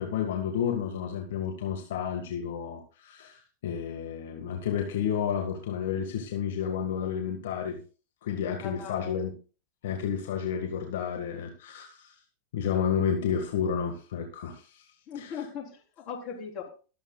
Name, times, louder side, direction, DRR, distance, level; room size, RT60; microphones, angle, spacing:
voice 1, 0.0-7.8 8.2-9.3 9.8-12.1 12.5-14.8 15.1-15.4, left 8 dB, 75° left, 3 dB, 1.7 m, -31 dB
voice 2, 8.6-9.2 15.1-16.7, left 7 dB, 40° left, 1 dB, 3.9 m, -39 dB
21.5 x 8.0 x 2.3 m, 0.36 s
hypercardioid pair, 105°, 0 cm